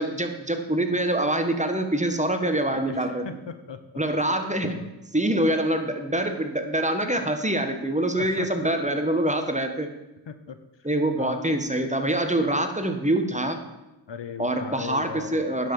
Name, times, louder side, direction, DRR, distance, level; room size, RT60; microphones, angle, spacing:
voice 1, 0.0-3.3 4.0-4.8 5.1-9.9 10.8-13.6 14.4-15.7, right 1 dB, 15° right, 6 dB, 1.5 m, -25 dB
voice 2, 2.7-3.8 4.6-4.9 8.1-8.7 10.3-10.6 11.2-11.4 14.1-15.5, left 6 dB, 65° left, 10 dB, 1.0 m, -38 dB
10.0 x 6.2 x 7.1 m, 0.96 s
cardioid pair, 45°, 47 cm